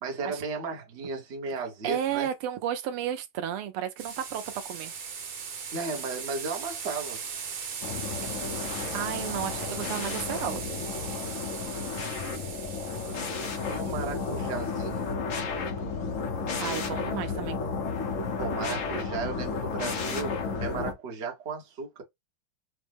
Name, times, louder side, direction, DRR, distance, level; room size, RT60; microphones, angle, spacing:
voice 1, 0.0-2.3 5.7-7.2 13.7-15.1 18.4-22.0, right 4 dB, 40° right, 1.0 m, -35 dB
voice 2, 1.8-4.9 8.9-10.6 16.6-17.6, right 10 dB, 85° right, 1.6 m, -33 dB
sound 1, 4.0-15.1, right 6 dB, 65° right, 1.8 m, -39 dB
sound 2, 7.8-20.9, left 4 dB, 60° left, 0.8 m, -32 dB
5.0 x 2.1 x 3.3 m
omnidirectional pair, 2.4 m